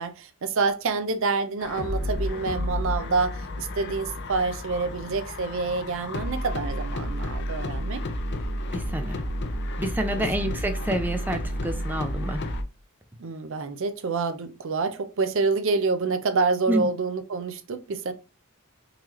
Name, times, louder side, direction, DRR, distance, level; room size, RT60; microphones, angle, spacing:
voice 1, 0.0-8.0 10.1-10.2 13.2-18.1, right 4 dB, 60° right, 0.5 m, -27 dB
sound 1, 1.6-12.6, left 1 dB, 50° left, 0.5 m, -31 dB
voice 2, 8.7-9.2 9.8-12.4 16.7-16.9, right 1 dB, 10° right, 0.5 m, -28 dB
3.8 x 3.0 x 3.0 m
head